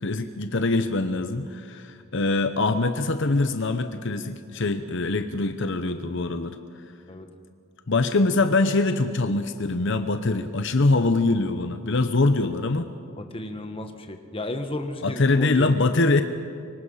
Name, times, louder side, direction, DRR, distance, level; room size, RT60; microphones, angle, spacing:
voice 1, 0.0-6.6 7.9-12.9 15.0-16.2, left 2 dB, 65° left, 8 dB, 0.9 m, -23 dB
voice 2, 13.2-16.0, left 1 dB, 25° left, 6 dB, 1.5 m, -34 dB
25.5 x 23.5 x 5.7 m, 2.3 s
head